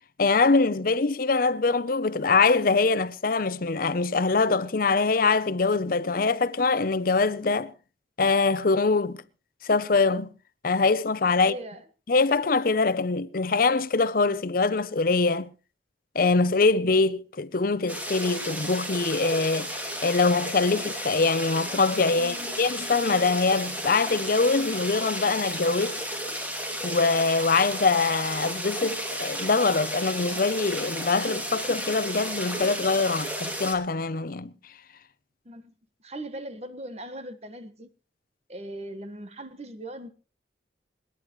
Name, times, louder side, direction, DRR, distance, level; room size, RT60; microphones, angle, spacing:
voice 1, 0.2-7.7 8.2-9.2 9.6-10.3 10.6-11.5 12.1-15.5 16.1-26.0 26.8-34.5, left 4 dB, 50° left, 0.7 m, -23 dB
voice 2, 11.4-11.8 22.1-22.7 35.4-35.7 36.0-37.9 38.5-40.1, right 1 dB, 35° right, 1.4 m, -39 dB
sound 1, 17.9-33.7, equal, 10° right, 2.5 m, -33 dB
26.5 x 11.0 x 3.1 m
head